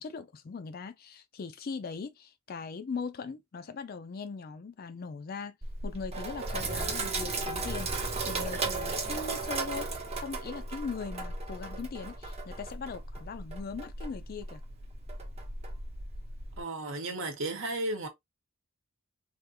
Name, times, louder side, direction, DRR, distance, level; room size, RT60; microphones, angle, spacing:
voice 1, 0.0-5.6 5.8-9.9 10.2-14.6, left 5 dB, 40° left, 0.3 m, -40 dB
Sink (filling or washing), 5.6-16.6, right 3 dB, 25° right, 0.8 m, -36 dB
voice 2, 16.6-18.1, right 2 dB, 55° right, 0.9 m, -34 dB
3.4 x 2.4 x 2.7 m
head